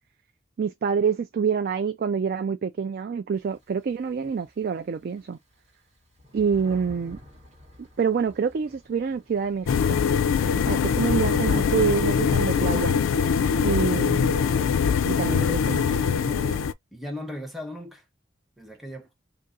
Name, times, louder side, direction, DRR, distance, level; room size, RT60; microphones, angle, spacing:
voice 1, 0.6-5.4 6.3-7.2 8.0-10.0 10.7-13.0 13.6-14.5 15.1-16.6, right 6 dB, 50° right, 0.3 m, -27 dB
Thunder, 3.3-4.6 5.2-5.3 5.5-13.3, left 1 dB, 35° right, 1.6 m, -45 dB
sound 1, 9.7-16.7, left 6 dB, 85° left, 0.3 m, -23 dB
voice 2, 16.9-18.0 18.6-19.2, left 1 dB, ahead, 0.9 m, -37 dB
2.7 x 2.6 x 3.7 m
head